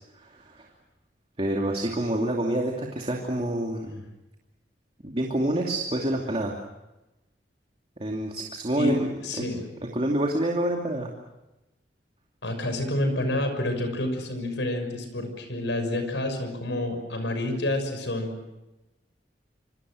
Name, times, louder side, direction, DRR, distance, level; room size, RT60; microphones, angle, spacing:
voice 1, 0.2-0.6 1.4-4.0 5.0-6.5 8.0-9.1 9.4-9.5 9.9-11.1, right 1 dB, 35° right, 0 dB, 2.7 m, -27 dB
voice 2, 9.2-9.6 12.4-18.3, left 1 dB, 80° left, 7 dB, 6.4 m, -28 dB
26.5 x 26.0 x 6.4 m, 0.99 s
head